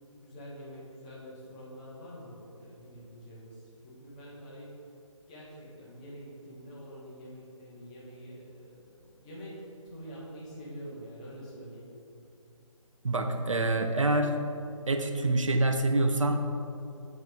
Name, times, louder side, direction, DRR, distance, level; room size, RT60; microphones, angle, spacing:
voice 1, 0.2-4.8 5.3-12.0, equal, 10° left, -7 dB, 0.8 m, -46 dB
voice 2, 13.0-14.3 14.9-16.4, right 2 dB, 65° right, 5 dB, 0.6 m, -26 dB
7.3 x 3.2 x 5.2 m, 2.6 s
figure-of-eight pair, 150°, 17 cm